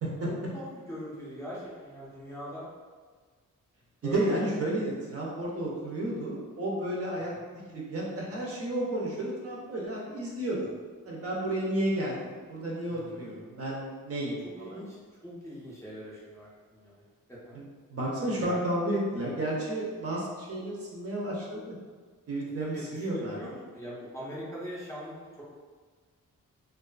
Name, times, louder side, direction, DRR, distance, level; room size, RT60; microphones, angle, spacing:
voice 1, 0.3-2.7 4.0-4.3 7.3-7.5 12.9-13.3 14.6-17.0 17.3-17.6 18.3-18.6 22.6-25.4, equal, 10° left, -9 dB, 0.5 m, -42 dB
voice 2, 4.0-7.3 7.7-10.6 11.1-14.8 17.5-17.6 17.9-21.8 22.3-23.4, right 1 dB, 45° right, -4 dB, 0.5 m, -32 dB
2.4 x 2.3 x 2.2 m, 1.5 s
wide cardioid pair, 155°, 33 cm